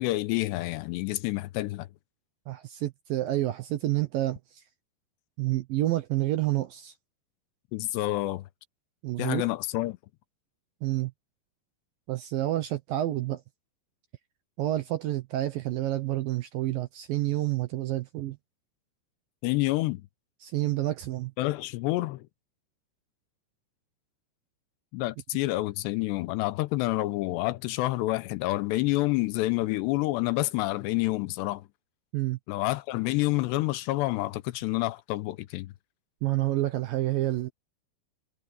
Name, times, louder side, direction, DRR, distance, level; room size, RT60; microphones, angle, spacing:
voice 1, 0.0-1.9 7.7-8.5 9.2-10.0 19.4-20.0 21.4-22.3 24.9-31.7 32.5-35.7, left 19 dB, 85° left, 2.7 m, -28 dB
voice 2, 2.5-4.6 5.4-6.9 9.0-9.5 10.8-11.1 12.1-13.4 14.6-18.4 20.4-21.3 32.1-32.4 36.2-37.5, right 15 dB, 75° right, 2.2 m, -29 dB
omnidirectional pair, 5.2 m